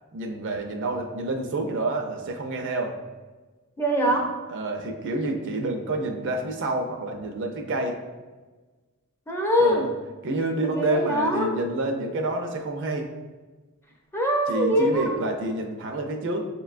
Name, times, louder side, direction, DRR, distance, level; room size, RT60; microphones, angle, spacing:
voice 1, 0.1-3.0 4.1-4.2 4.5-8.0 9.6-9.8 10.2-13.1 14.5-16.5, right 2 dB, 60° right, 4 dB, 0.5 m, -28 dB
voice 2, 3.8-4.3 9.3-9.9 10.7-11.5 14.1-15.1, equal, 10° left, 0 dB, 0.5 m, -23 dB
6.4 x 2.2 x 2.4 m, 1.3 s
head